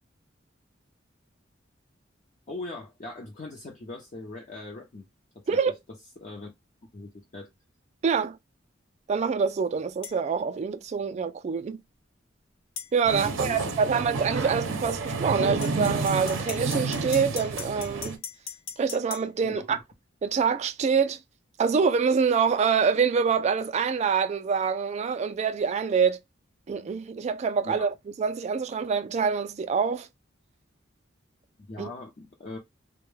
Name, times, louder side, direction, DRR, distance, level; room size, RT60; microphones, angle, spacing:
voice 1, 2.5-5.1 5.3-5.6 6.2-6.5 6.9-7.5 13.1-14.0 19.4-19.8 27.6-27.8 31.6-32.6, left 2 dB, 40° left, 0.5 m, -40 dB
voice 2, 8.0-8.4 9.1-11.8 12.9-18.2 18.8-19.8 20.2-21.2 21.6-26.2 26.7-30.1 31.8-31.9, right 6 dB, 35° right, 0.3 m, -25 dB
sound 1, 10.0-10.2 12.8-12.9 15.6-19.2, left 7 dB, 90° left, 0.5 m, -39 dB
sound 2, 13.0-18.1, right 3 dB, 85° right, 0.5 m, -30 dB
2.1 x 2.1 x 3.1 m
head